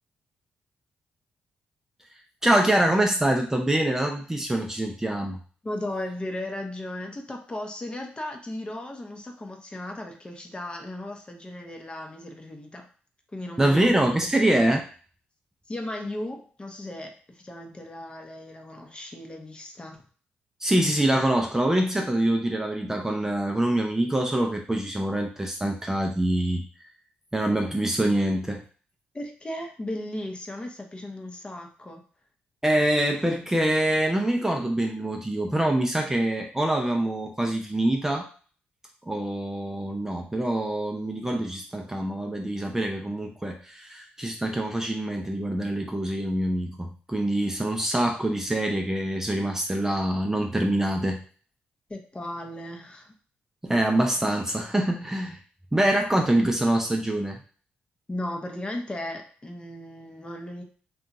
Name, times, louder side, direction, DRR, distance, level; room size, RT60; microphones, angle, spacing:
voice 1, 2.4-5.4 13.6-14.9 20.6-26.6 27.3-28.6 32.6-38.3 39.1-51.2 53.6-55.4 55.7-57.4, right 1 dB, 10° right, 2 dB, 0.4 m, -25 dB
voice 2, 5.6-12.9 13.3-13.9 15.7-20.0 29.1-32.0 51.9-53.1 58.1-60.6, left 1 dB, 25° left, 3 dB, 0.7 m, -36 dB
2.8 x 2.3 x 2.6 m, 0.42 s
supercardioid pair, 55°, 4 cm